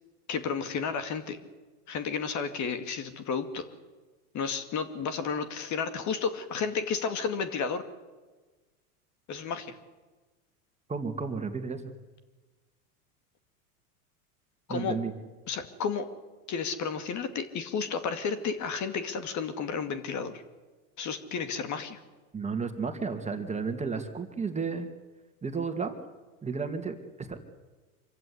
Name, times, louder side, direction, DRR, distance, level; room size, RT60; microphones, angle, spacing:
voice 1, 0.3-1.4 1.9-3.6 4.3-7.8 9.3-9.8 14.7-15.0 15.5-16.1 16.5-20.4 21.0-22.0, left 6 dB, 40° left, 10 dB, 2.4 m, -32 dB
voice 2, 10.9-11.8 14.7-15.1 22.3-24.9 25.4-26.0 26.4-27.4, right 5 dB, 15° right, 6 dB, 2.5 m, -32 dB
25.5 x 15.5 x 9.7 m, 1.3 s
hypercardioid pair, 105°, 45 cm